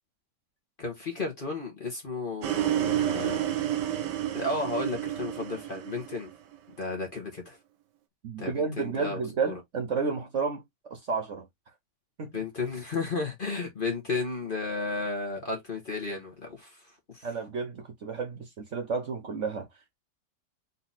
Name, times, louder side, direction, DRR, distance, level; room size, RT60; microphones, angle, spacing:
voice 1, 0.8-3.5 4.3-6.3 6.8-7.6 8.4-9.6 12.3-16.8 17.1-17.3, left 3 dB, 35° left, 1.2 m, -33 dB
sound 1, 2.4-6.5, right 12 dB, 80° right, 1.3 m, -30 dB
voice 2, 8.2-10.6 10.9-11.5 12.2-12.4 17.2-19.7, right 5 dB, 50° right, 1.1 m, -31 dB
4.2 x 2.9 x 4.0 m
omnidirectional pair, 1.9 m